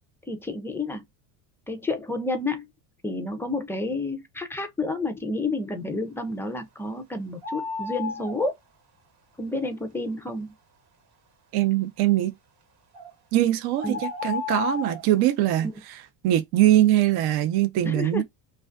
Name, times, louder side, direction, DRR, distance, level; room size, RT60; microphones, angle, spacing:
voice 1, 0.3-1.0 1.7-2.7 3.0-8.5 9.4-10.5 13.8-14.0 15.6-15.7 17.8-18.2, left 2 dB, 5° left, 0.3 m, -30 dB
sound 1, 7.4-8.4 12.9-13.1 13.8-15.1, left 5 dB, 35° right, 0.9 m, -31 dB
voice 2, 11.5-12.3 13.3-16.0 16.2-18.2, right 13 dB, 55° right, 0.6 m, -22 dB
2.4 x 2.3 x 2.3 m
supercardioid pair, 110°, 46 cm